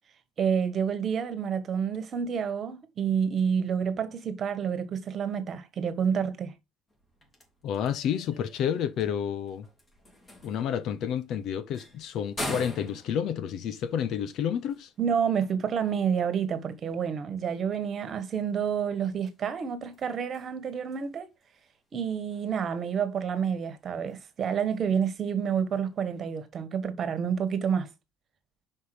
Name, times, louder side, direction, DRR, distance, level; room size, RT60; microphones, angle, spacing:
voice 1, 0.4-6.5 15.0-21.3 21.9-27.9, right 7 dB, 40° right, 1.5 m, -29 dB
sound 1, 6.9-26.4, left 1 dB, 25° left, 3.2 m, -47 dB
voice 2, 7.6-9.7 10.4-14.9, left 9 dB, 55° left, 0.8 m, -30 dB
5.7 x 5.4 x 4.9 m
supercardioid pair, 105°, 0 cm